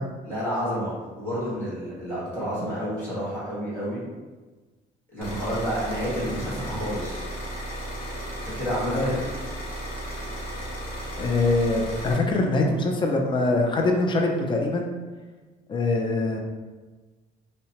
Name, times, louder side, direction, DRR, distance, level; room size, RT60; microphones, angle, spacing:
voice 1, 0.0-4.0 5.1-7.2 8.5-9.2, equal, 10° left, -10 dB, 1.3 m, -30 dB
sound 1, 5.2-12.1, right 1 dB, 60° left, 0.9 m, -34 dB
voice 2, 11.2-14.9 15.7-16.4, left 2 dB, 30° left, 2 dB, 0.4 m, -23 dB
2.7 x 2.1 x 2.8 m, 1.3 s
cardioid pair, 110°, 17 cm